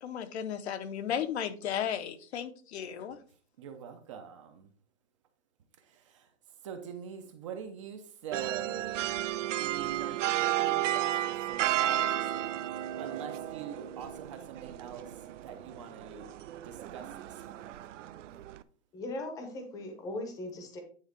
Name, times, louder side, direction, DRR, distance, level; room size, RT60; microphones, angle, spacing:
voice 1, 0.0-3.2, left 9 dB, 65° left, 0.9 m, -34 dB
voice 2, 3.6-4.7 5.8-6.3 6.6-9.1 9.6-16.3 16.6-18.2, right 7 dB, 25° right, 0.6 m, -45 dB
sound 1, 8.3-18.6, right 13 dB, 80° right, 0.6 m, -33 dB
voice 3, 18.9-20.8, left 1 dB, 10° left, 0.8 m, -39 dB
9.5 x 3.7 x 5.0 m
supercardioid pair, 175°, 36 cm